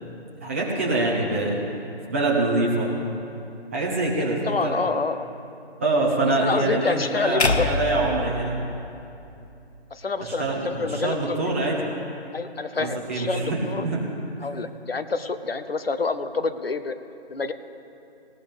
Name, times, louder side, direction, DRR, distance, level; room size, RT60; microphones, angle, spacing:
voice 1, 0.4-1.6 2.1-2.9 3.7-4.8 5.8-8.6 10.2-11.8 12.7-14.1, right 2 dB, 15° right, -4 dB, 1.2 m, -25 dB
voice 2, 4.5-5.3 6.4-7.7 9.9-11.4 12.3-13.8 14.4-17.0 17.3-17.5, left 4 dB, 65° left, 11 dB, 0.9 m, -27 dB
sound 1, 7.4-9.7, left 3 dB, 85° left, 1.2 m, -26 dB
19.5 x 17.5 x 3.5 m, 2.8 s
figure-of-eight pair, 165°, 32 cm